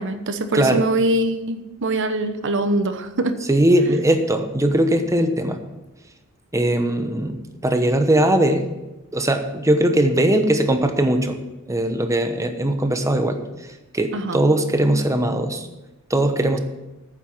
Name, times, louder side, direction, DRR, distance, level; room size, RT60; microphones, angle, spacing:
voice 1, 0.0-3.4 14.1-14.4, right 2 dB, 60° right, 9 dB, 1.0 m, -23 dB
voice 2, 0.5-0.8 3.5-5.6 6.5-8.7 9.1-11.4 11.7-13.4 13.9-15.7 16.1-16.6, right 1 dB, 15° right, 6 dB, 0.9 m, -19 dB
8.9 x 7.6 x 7.3 m, 1.0 s
head